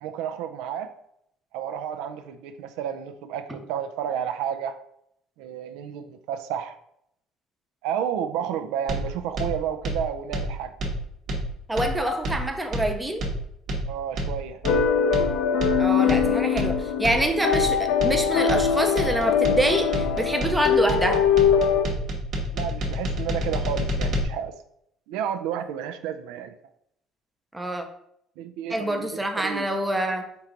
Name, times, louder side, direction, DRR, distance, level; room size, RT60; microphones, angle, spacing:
voice 1, 0.0-0.9 1.5-4.8 5.4-6.7 7.8-10.7 13.9-14.6 22.5-24.6 25.1-26.6 28.4-29.1 29.4-29.7, right 9 dB, 90° right, 8 dB, 0.4 m, -31 dB
sound 1, 8.9-24.2, equal, 50° right, 1.0 m, -29 dB
voice 2, 11.7-13.2 15.8-21.2 27.5-27.8 28.7-30.3, right 1 dB, 5° right, 4 dB, 0.5 m, -26 dB
sound 2, 14.6-21.9, left 7 dB, 85° left, 0.5 m, -22 dB
4.6 x 2.9 x 3.8 m, 0.73 s
cardioid pair, 155°, 0 cm